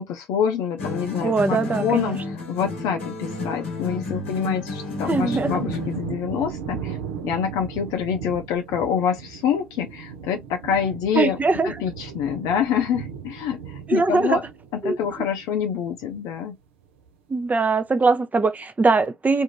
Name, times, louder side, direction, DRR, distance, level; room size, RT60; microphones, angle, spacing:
voice 1, 0.0-2.2 2.5-7.0 7.2-11.4 11.6-14.4 14.7-16.6, left 8 dB, 65° left, 0.5 m, -26 dB
sound 1, 0.8-6.1, left 3 dB, 90° left, 0.8 m, -31 dB
voice 2, 1.2-2.1 5.0-5.6 11.1-11.7 13.9-14.4 14.8-15.0 17.3-19.4, right 4 dB, 25° right, 0.6 m, -21 dB
sound 2, 3.5-16.3 16.7-17.3, right 7 dB, 80° right, 0.5 m, -37 dB
2.5 x 2.4 x 3.0 m
hypercardioid pair, 55°, 7 cm